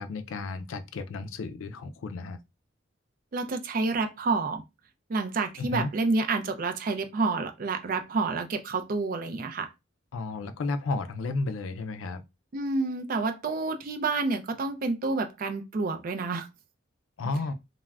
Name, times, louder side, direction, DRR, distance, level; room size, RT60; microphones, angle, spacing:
voice 1, 0.0-2.4 5.6-5.9 10.1-12.2 17.2-17.5, left 3 dB, 85° left, 0.4 m, -32 dB
voice 2, 3.3-4.6 5.1-9.7 12.5-16.5, right 3 dB, 45° right, 0.4 m, -29 dB
2.3 x 2.0 x 3.3 m
head